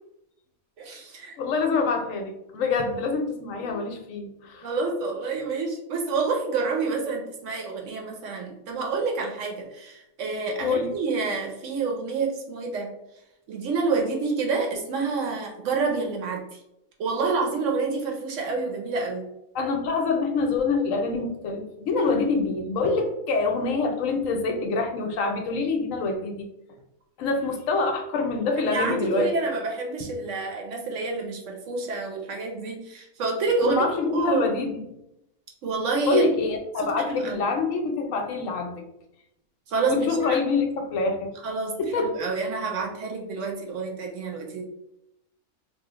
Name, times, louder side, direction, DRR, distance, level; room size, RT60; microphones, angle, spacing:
voice 1, 0.8-1.4 4.6-12.9 13.5-16.4 17.0-19.2 28.7-34.4 35.6-36.2 36.8-37.4 39.7-40.4 41.4-44.6, right 4 dB, 65° right, 1 dB, 0.9 m, -28 dB
voice 2, 1.4-4.7 10.6-10.9 19.5-26.5 27.2-29.3 33.6-34.8 36.1-38.7 39.9-41.3 41.8-42.1, left 4 dB, 70° left, 3 dB, 0.9 m, -26 dB
2.9 x 2.0 x 3.8 m, 0.83 s
omnidirectional pair, 1.5 m